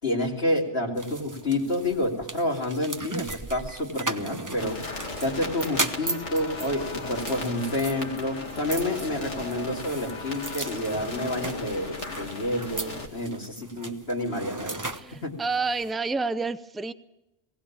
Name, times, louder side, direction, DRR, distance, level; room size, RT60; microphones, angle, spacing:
voice 1, 0.0-4.8 5.2-14.8 15.1-15.4, left 1 dB, 60° left, -1 dB, 3.2 m, -29 dB
sound 1, 1.0-15.9, right 2 dB, 20° right, 0.8 m, -37 dB
sound 2, 4.6-13.1, left 2 dB, 85° left, 2.8 m, -36 dB
voice 2, 14.9-16.9, right 4 dB, ahead, 12 dB, 0.4 m, -29 dB
19.5 x 18.0 x 7.3 m, 0.90 s
omnidirectional pair, 1.2 m